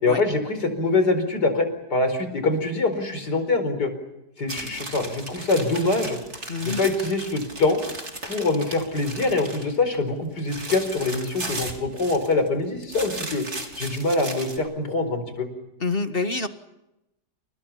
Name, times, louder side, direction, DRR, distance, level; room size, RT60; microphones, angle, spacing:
voice 1, 0.0-3.9 4.4-6.2 6.6-7.8 8.2-13.4 13.8-15.5, left 3 dB, 75° left, 9 dB, 5.2 m, -24 dB
sound 1, 4.5-9.8 10.1-12.5 12.8-14.6, right 2 dB, 40° right, 4.2 m, -36 dB
voice 2, 6.5-6.8 15.8-16.5, left 3 dB, 35° left, 8 dB, 1.7 m, -26 dB
29.5 x 29.5 x 5.8 m, 0.90 s
omnidirectional pair, 1.8 m